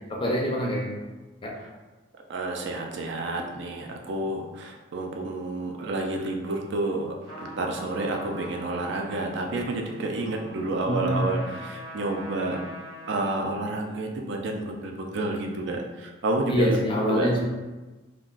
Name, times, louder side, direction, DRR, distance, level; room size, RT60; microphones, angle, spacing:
voice 1, 0.2-1.0 1.4-1.5 10.9-11.3 16.5-17.4, equal, 25° left, -1 dB, 0.4 m, -25 dB
voice 2, 2.3-12.6 13.1-16.8 17.1-17.3, right 2 dB, 60° right, 1 dB, 0.4 m, -30 dB
Trumpet, 7.2-13.5, left 1 dB, 75° right, 0.9 m, -43 dB
2.4 x 2.2 x 3.7 m, 1.2 s
head